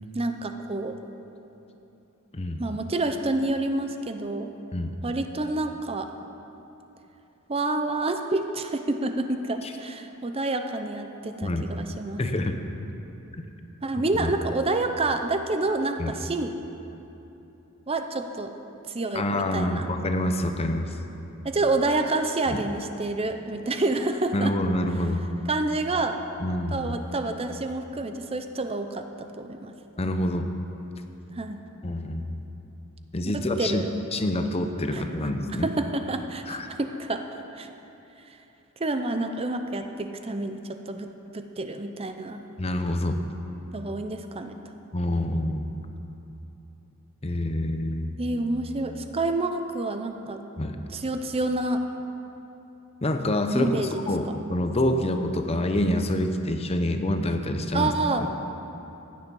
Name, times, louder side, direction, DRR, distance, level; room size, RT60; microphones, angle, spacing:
voice 1, 0.1-1.0 2.6-4.5 5.0-6.1 7.5-12.5 13.8-16.5 17.9-18.5 18.9-19.9 21.4-24.5 25.5-26.2 26.7-29.7 31.4-31.6 33.6-33.9 34.9-35.0 35.5-37.3 37.6-37.7 38.8-42.4 43.7-44.6 45.4-45.5 48.2-50.4 50.9-51.8 53.5-53.9 57.7-58.3, right 2 dB, 25° right, 6 dB, 0.6 m, -28 dB
voice 2, 12.2-12.6 13.4-13.5 14.2-14.3 16.0-16.1 19.1-21.0 22.5-22.6 24.3-25.2 26.4-26.9 30.0-30.5 31.8-32.4 33.1-33.8 34.1-35.7 36.5-36.7 42.6-43.2 44.9-45.7 47.2-48.2 50.6-50.8 53.0-58.3, left 1 dB, 30° left, 6 dB, 0.7 m, -27 dB
16.0 x 9.8 x 5.4 m, 3.0 s
head